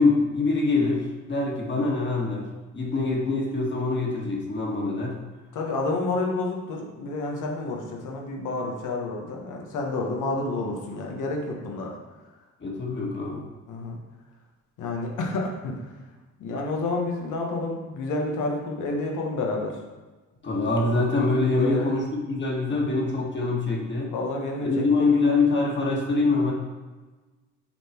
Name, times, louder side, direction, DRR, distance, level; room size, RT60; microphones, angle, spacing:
voice 1, 0.0-5.2 12.6-13.4 20.4-24.1 24.6-26.5, left 3 dB, 40° left, -1 dB, 1.7 m, -24 dB
voice 2, 5.5-11.9 13.7-14.0 14.8-15.8 16.4-19.8 21.5-21.9 22.7-22.9 24.1-24.7 25.0-25.1, left 2 dB, 85° left, 0 dB, 1.4 m, -29 dB
6.7 x 3.9 x 4.4 m, 1.2 s
cardioid pair, 90°, 30 cm